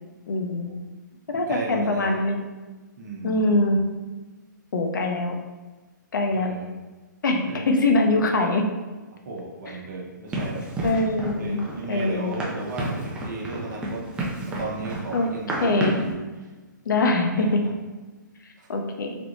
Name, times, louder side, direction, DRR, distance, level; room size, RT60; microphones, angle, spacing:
voice 1, 0.3-0.7 1.3-2.4 3.2-3.8 4.7-5.4 6.1-6.5 7.2-8.6 9.7-9.8 10.8-11.6 11.9-12.5 15.1-15.3 15.6-16.0 16.9-17.6 18.7-19.2, left 2 dB, 70° left, 3 dB, 0.6 m, -23 dB
voice 2, 1.3-2.2 3.0-3.4 6.3-6.7 7.5-7.6 9.2-10.7 11.4-14.1 14.5-16.2 17.3-17.7 18.6-18.7, right 3 dB, 60° right, -1 dB, 0.9 m, -35 dB
Run, 10.3-16.1, right 1 dB, 10° right, 0.4 m, -31 dB
3.4 x 2.9 x 2.5 m, 1.2 s
hypercardioid pair, 155°, 11 cm